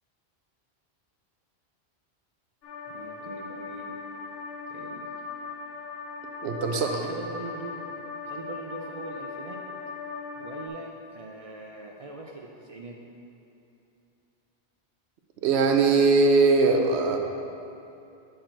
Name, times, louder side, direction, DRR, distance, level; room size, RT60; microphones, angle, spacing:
sound 1, 2.6-10.7, left 4 dB, 65° left, 0.8 m, -39 dB
voice 1, 2.9-4.0 4.7-5.1 6.7-8.0 8.2-9.6 10.4-13.0, right 3 dB, 60° right, 0 dB, 0.3 m, -41 dB
voice 2, 6.4-7.1 15.4-17.2, right 3 dB, 75° right, 4 dB, 0.8 m, -21 dB
7.6 x 4.4 x 4.4 m, 2.7 s
omnidirectional pair, 1.1 m